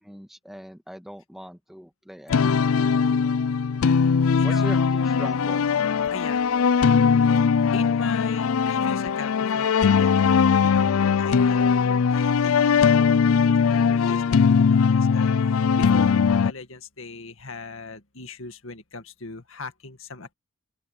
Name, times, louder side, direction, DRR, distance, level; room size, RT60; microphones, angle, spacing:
voice 1, 0.0-2.7 4.4-5.6, equal, ahead, 2.0 m, -40 dB
sound 1, 2.3-16.5, left 6 dB, 90° left, 0.4 m, -20 dB
voice 2, 3.3-4.8 6.0-6.8 7.7-11.6 12.1-20.3, left 4 dB, 70° left, 2.0 m, -40 dB
open air
head